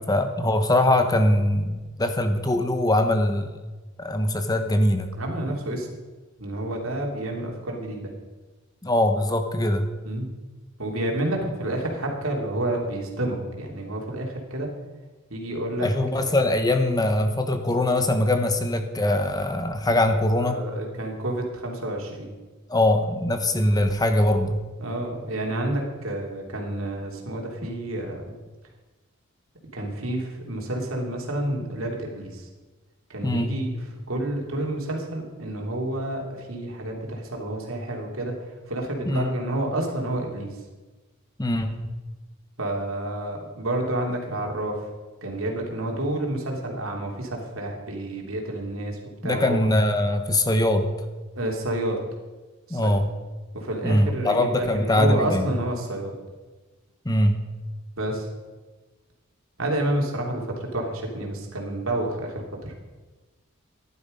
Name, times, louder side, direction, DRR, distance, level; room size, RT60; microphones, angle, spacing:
voice 1, 0.0-3.5 4.0-5.1 8.8-9.9 15.8-20.6 22.7-24.6 33.2-33.5 39.1-39.3 41.4-41.8 49.2-50.9 52.7-53.1 53.8-55.5 57.0-57.4, left 1 dB, 20° left, 7 dB, 1.0 m, -22 dB
voice 2, 5.1-5.9 6.4-8.1 10.0-10.3 10.8-14.7 15.3-15.9 20.4-22.3 24.8-28.3 29.7-32.5 33.1-33.7 34.1-38.3 38.7-40.5 42.6-44.9 45.2-49.7 51.3-52.0 52.7-53.1 53.5-56.1 58.0-58.3 59.6-62.3 62.6-62.7, right 1 dB, 80° right, 0 dB, 3.0 m, -29 dB
14.5 x 11.5 x 5.3 m, 1.2 s
head